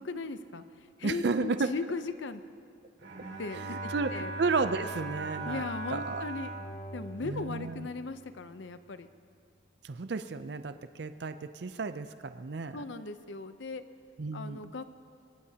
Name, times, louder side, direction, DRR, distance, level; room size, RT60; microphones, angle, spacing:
voice 1, 0.0-2.4 3.4-4.3 5.4-6.5 6.9-9.1 12.7-13.8 14.3-14.8, left 3 dB, 70° left, 11 dB, 0.7 m, -38 dB
voice 2, 1.0-1.7 3.6-5.6 5.9-6.2 7.2-7.8 9.8-12.8 14.2-14.7, right 4 dB, 60° right, 10 dB, 0.5 m, -33 dB
Bowed string instrument, 3.0-8.3, right 2 dB, 85° right, 5.1 m, -40 dB
23.5 x 21.0 x 2.9 m, 2.2 s
head